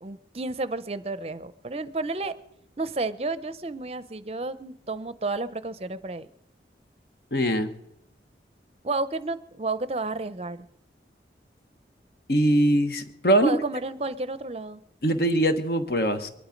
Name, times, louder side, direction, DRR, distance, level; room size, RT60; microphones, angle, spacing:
voice 1, 0.0-2.3 2.8-6.3 8.8-10.6 13.4-14.8, right 3 dB, 35° right, 14 dB, 0.6 m, -31 dB
voice 2, 7.3-7.7 12.3-13.6 15.0-16.3, right 1 dB, 60° left, 8 dB, 1.2 m, -22 dB
22.0 x 11.5 x 5.2 m, 0.82 s
head